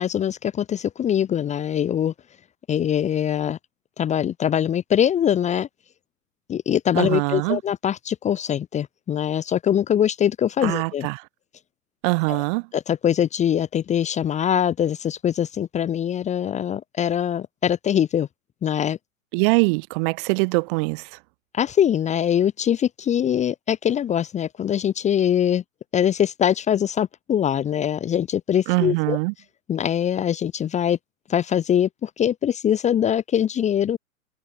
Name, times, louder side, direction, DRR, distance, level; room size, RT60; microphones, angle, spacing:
voice 1, 0.0-2.1 2.7-3.6 4.0-5.7 6.5-11.1 12.3-12.4 12.7-18.3 18.6-19.0 21.5-25.6 25.9-29.2 29.7-31.0 31.3-34.0, left 9 dB, 15° left, 1.6 m, -23 dB
voice 2, 7.0-7.6 10.6-11.2 12.0-12.6 19.3-21.0 28.7-29.3, right 29 dB, 35° right, 3.0 m, -22 dB
figure-of-eight pair, 115°, 43 cm